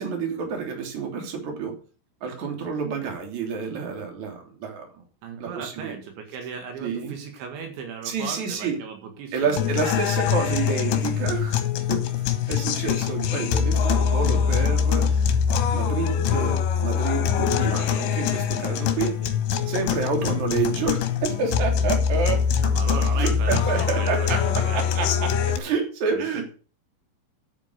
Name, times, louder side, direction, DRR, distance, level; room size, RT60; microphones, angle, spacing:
voice 1, 0.0-1.7 2.2-4.9 5.4-5.9 6.8-7.2 8.0-8.8 9.3-15.1 15.7-19.1 19.7-22.4 23.2-26.5, right 5 dB, 40° right, 3 dB, 4.0 m, -29 dB
voice 2, 5.2-10.0 18.8-19.3 22.6-24.8 26.1-26.3, right 6 dB, 75° right, 4 dB, 4.2 m, -37 dB
sound 1, 9.6-25.6, left 7 dB, 70° left, 3.4 m, -23 dB
11.0 x 8.6 x 6.7 m, 0.38 s
omnidirectional pair, 5.4 m